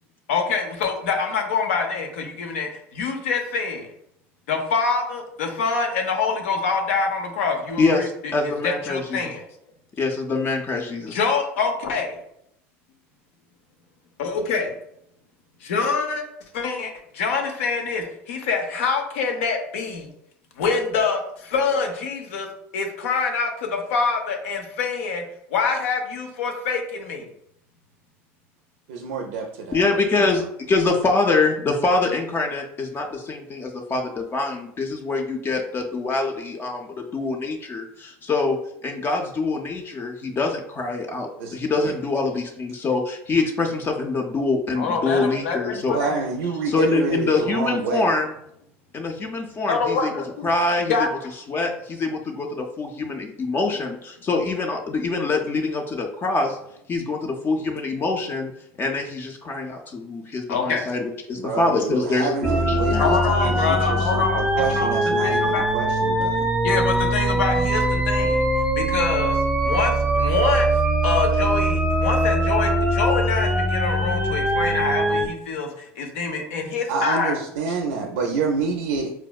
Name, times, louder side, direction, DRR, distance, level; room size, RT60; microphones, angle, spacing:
voice 1, 0.3-3.9 4.5-9.4 11.1-12.1 14.2-14.7 15.6-16.2 16.5-20.1 20.6-22.5 22.7-25.2 25.5-27.3 44.8-46.1 49.7-50.5 50.9-51.1 60.5-60.8 63.0-65.6 66.3-68.4 68.8-69.4 69.6-70.7 71.0-77.4, left 5 dB, 85° left, 4 dB, 0.6 m, -25 dB
voice 2, 8.3-9.2 10.0-11.2 29.7-46.0 46.7-48.3 48.9-50.1 50.4-51.1 51.5-56.6 56.9-58.5 58.8-62.3 62.8-63.1, left 3 dB, 30° left, 2 dB, 0.4 m, -24 dB
voice 3, 28.9-30.4 41.4-42.0 45.7-48.1 56.4-56.5 61.4-66.5 76.9-79.1, right 4 dB, 85° right, 1 dB, 0.4 m, -28 dB
sound 1, 62.4-75.3, right 1 dB, 10° right, 0.6 m, -22 dB
4.3 x 2.0 x 2.3 m, 0.75 s
supercardioid pair, 95°, 7 cm